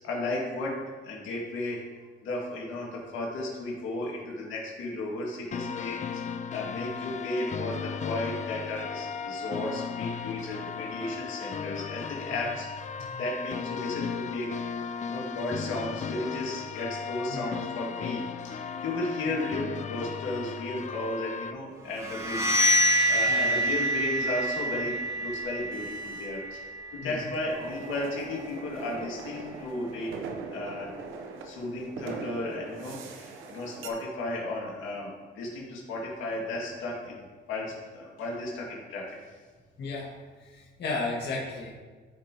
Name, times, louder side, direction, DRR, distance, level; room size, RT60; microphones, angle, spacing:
voice 1, 0.0-0.8 1.0-1.8 2.2-12.7 13.2-14.5 15.0-26.7 26.9-30.2 30.5-30.9 31.4-39.2, left 2 dB, 85° left, -3 dB, 2.1 m, -34 dB
sound 1, 5.5-21.5, left 6 dB, 35° left, 0.5 m, -36 dB
sound 2, 22.0-27.7, equal, 15° right, 1.7 m, -27 dB
voice 2, 23.3-23.6 27.0-27.1 39.8-40.1 40.4-41.8, left 3 dB, 60° left, -3 dB, 1.8 m, -34 dB
sound 3, 27.5-33.9, right 4 dB, 80° right, 0.9 m, -41 dB
14.5 x 4.9 x 3.0 m, 1.4 s
cardioid pair, 90°, 20 cm